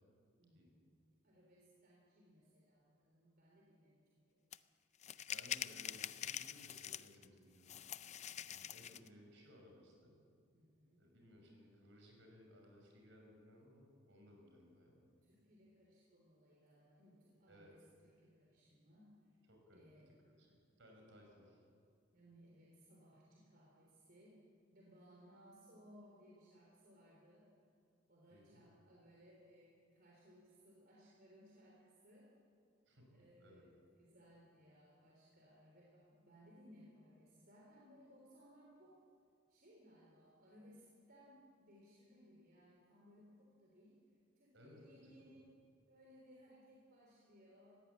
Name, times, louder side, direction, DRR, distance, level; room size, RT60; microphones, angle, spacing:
voice 1, 0.4-1.0 1.2-4.4 8.3-8.9 10.5-11.1 15.2-19.4 19.7-20.2 22.1-24.4 24.7-27.5 28.1-32.3 33.1-39.0 39.5-44.0 44.4-45.5 45.9-47.7, equal, 50° right, -3 dB, 3.7 m, -64 dB
sound 1, 4.5-4.6 5.0-7.2 7.7-9.1, left 9 dB, 35° left, 0.4 m, -45 dB
voice 2, 5.3-7.9 8.4-10.2 11.0-15.0 17.5-17.7 19.5-20.5 20.8-21.6 28.3-28.6 32.9-33.1 33.4-33.7 44.5-45.4, left 1 dB, 70° right, 1 dB, 5.9 m, -62 dB
19.5 x 16.0 x 8.4 m, 2.2 s
head